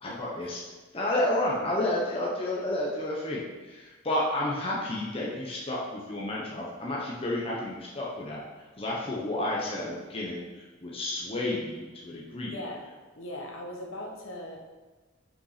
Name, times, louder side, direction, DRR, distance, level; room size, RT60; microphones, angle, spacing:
voice 1, 0.0-0.6 0.9-8.4 8.8-12.6, left 1 dB, 30° left, -4 dB, 1.0 m, -31 dB
voice 2, 12.5-12.9 13.1-14.6, left 1 dB, 75° left, 0 dB, 1.3 m, -39 dB
5.7 x 5.3 x 5.0 m, 1.3 s
head